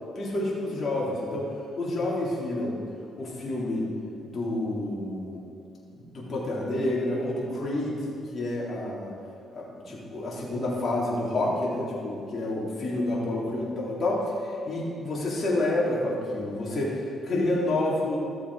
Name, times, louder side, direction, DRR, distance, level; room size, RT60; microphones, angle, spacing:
voice 1, 0.1-1.5 1.8-2.8 3.2-3.9 4.2-5.4 5.9-8.0 8.3-9.1 9.5-18.2, left 1 dB, 45° left, -5 dB, 3.2 m, -29 dB
14.0 x 7.1 x 4.8 m, 2.4 s
cardioid pair, 90°, 0 cm